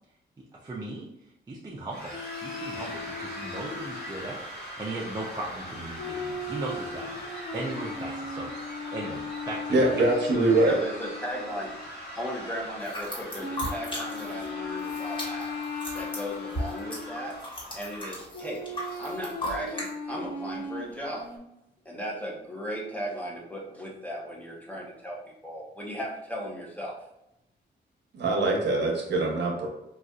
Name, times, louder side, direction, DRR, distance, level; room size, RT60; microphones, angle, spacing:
voice 1, 0.5-1.1 1.5-9.9, right 2 dB, 20° right, -4 dB, 0.5 m, -38 dB
sound 1, 1.9-18.2, equal, 85° left, 1.4 m, -41 dB
sound 2, 2.1-4.3 6.0-12.0 13.4-17.4 18.3-21.4, left 3 dB, 50° left, 0.7 m, -38 dB
voice 2, 9.7-10.8 28.1-29.7, right 2 dB, 70° right, 0 dB, 0.8 m, -23 dB
voice 3, 10.6-11.8 12.1-15.5 15.9-17.4 17.7-18.6 19.0-21.3 21.8-27.0, equal, 10° left, -3 dB, 0.8 m, -36 dB
sound 3, 12.8-14.5 14.7-19.9, equal, 25° left, 1.4 m, -36 dB
4.1 x 2.4 x 2.3 m, 0.83 s
wide cardioid pair, 120°, 18 cm